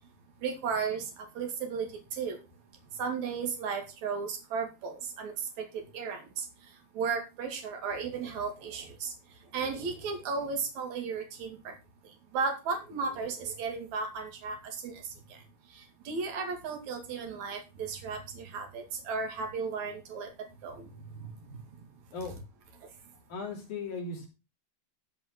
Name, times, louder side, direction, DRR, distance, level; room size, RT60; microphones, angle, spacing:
voice 1, 0.4-2.4 3.0-6.5 6.9-9.1 9.5-11.7 12.3-15.0 15.3-15.4 15.7-20.3 20.6-21.6, right 5 dB, 50° right, 5 dB, 3.2 m, -35 dB
voice 2, 23.3-24.3, left 4 dB, 50° left, -1 dB, 4.5 m, -37 dB
13.5 x 4.8 x 6.0 m, 0.28 s
omnidirectional pair, 4.7 m